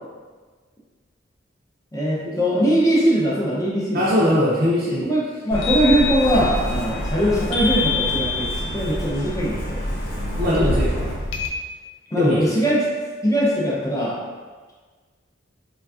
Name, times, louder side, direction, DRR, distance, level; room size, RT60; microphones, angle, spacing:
voice 1, 1.9-4.5 5.0-9.9 12.1-12.9 13.2-14.2, equal, 20° left, -5 dB, 0.5 m, -21 dB
voice 2, 3.9-5.1 10.3-11.0 12.1-12.6, left 1 dB, 55° right, -7 dB, 0.5 m, -21 dB
sound 1, 5.5-11.5, left 3 dB, 80° left, 0.4 m, -27 dB
Truck, 5.5-11.1, equal, 50° left, 0.8 m, -29 dB
3.2 x 2.3 x 2.4 m, 1.4 s
head